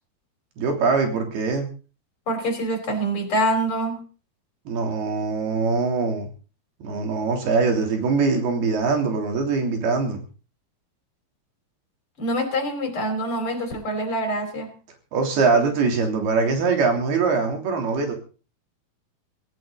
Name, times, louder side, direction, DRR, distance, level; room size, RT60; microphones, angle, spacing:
voice 1, 0.6-1.7 4.7-6.3 6.8-10.3 15.1-18.1, right 4 dB, 80° right, 3 dB, 5.3 m, -22 dB
voice 2, 2.3-4.0 12.2-14.7, right 1 dB, 35° left, 4 dB, 5.4 m, -25 dB
18.0 x 18.0 x 4.0 m, 0.37 s
omnidirectional pair, 4.4 m